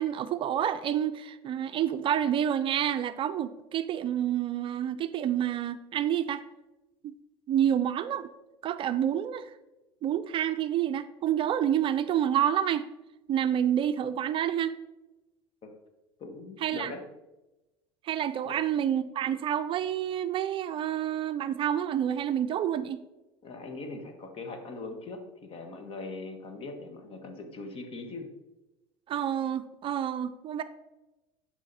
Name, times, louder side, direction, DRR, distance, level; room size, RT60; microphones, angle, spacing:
voice 1, 0.0-6.4 7.0-7.1 7.5-8.3 8.6-9.5 10.0-12.9 13.3-14.8 16.6-16.9 18.0-23.0 29.1-30.6, right 10 dB, 40° right, 11 dB, 0.5 m, -28 dB
voice 2, 16.2-17.0 18.4-18.5 23.4-28.3, left 3 dB, 45° left, 5 dB, 1.6 m, -41 dB
11.0 x 4.9 x 4.2 m, 1.0 s
hypercardioid pair, 90°, 13 cm